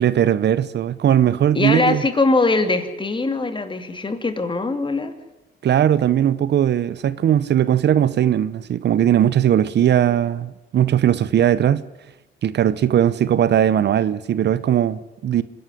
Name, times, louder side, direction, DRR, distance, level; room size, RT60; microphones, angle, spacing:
voice 1, 0.0-2.0 5.6-11.8 12.4-15.4, right 10 dB, 60° right, 0.9 m, -18 dB
voice 2, 1.5-5.1, left 3 dB, 25° left, 2.8 m, -21 dB
26.0 x 11.0 x 10.0 m
cardioid pair, 90°, 20 cm